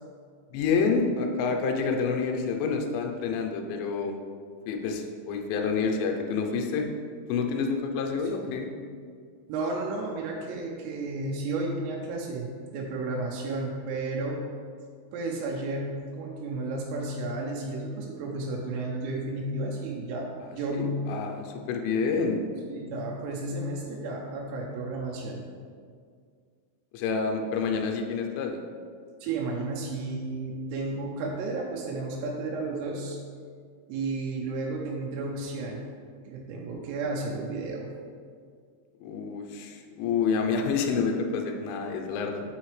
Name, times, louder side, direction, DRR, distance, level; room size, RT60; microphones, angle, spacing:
voice 1, 0.5-4.1 4.7-6.9 7.3-8.7 20.7-22.4 26.9-28.6 39.0-42.4, left 5 dB, 80° left, 3 dB, 2.9 m, -28 dB
voice 2, 9.5-14.5 15.1-21.0 22.7-25.5 29.2-33.2 33.9-35.8 36.2-37.9, right 2 dB, 85° right, -1 dB, 3.4 m, -32 dB
7.6 x 6.1 x 3.2 m, 2.1 s
omnidirectional pair, 5.9 m